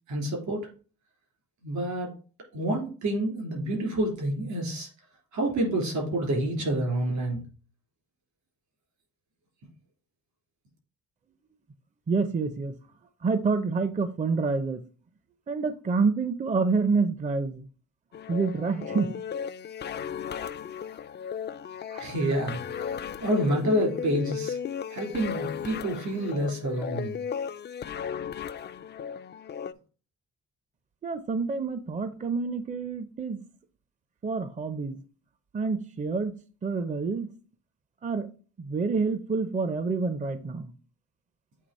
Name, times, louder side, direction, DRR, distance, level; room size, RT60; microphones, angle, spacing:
voice 1, 0.1-0.7 1.6-2.1 2.5-4.9 5.3-7.4 22.0-24.6 24.9-27.1, right 1 dB, 75° right, 3.2 m, -28 dB
voice 2, 12.1-12.7 13.2-14.8 15.5-17.7 18.3-19.2 21.9-22.0 31.0-33.4 34.2-35.0 35.5-37.3 38.0-38.3 38.6-40.7, right 4 dB, 25° right, 0.5 m, -28 dB
sound 1, 18.1-29.7, left 7 dB, 35° left, 0.4 m, -36 dB
8.4 x 2.9 x 4.1 m
cardioid pair, 90°, 30 cm